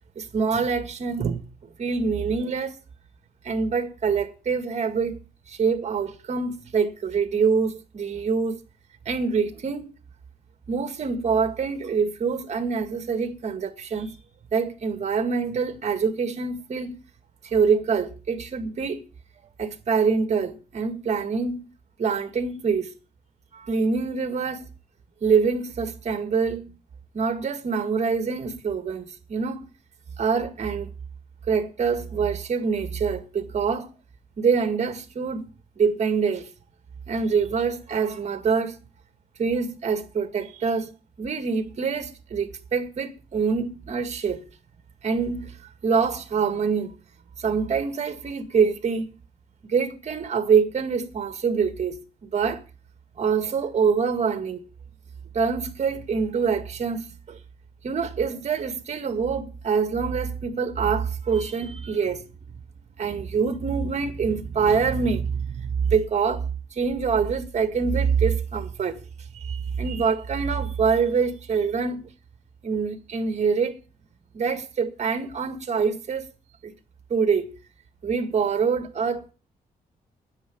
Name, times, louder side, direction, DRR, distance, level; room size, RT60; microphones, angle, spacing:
voice 1, 0.2-1.5 1.8-2.8 3.4-5.2 5.5-8.6 9.1-9.9 10.7-14.2 14.5-17.0 17.4-19.0 19.6-21.7 22.0-22.9 23.5-24.7 25.2-26.7 27.1-29.6 30.2-30.9 31.5-33.9 34.4-36.5 37.1-38.8 39.4-40.9 41.2-44.4 45.0-45.6 45.8-46.9 47.4-49.1 49.6-52.6 53.2-54.6 55.3-57.4 57.8-62.3 63.0-69.0 69.3-72.1 72.6-73.8 74.3-76.3 76.6-76.7 77.1-77.5 78.0-79.3, right 5 dB, 45° right, 2.0 m, -25 dB
10.0 x 7.9 x 8.7 m
cardioid pair, 130°, 16 cm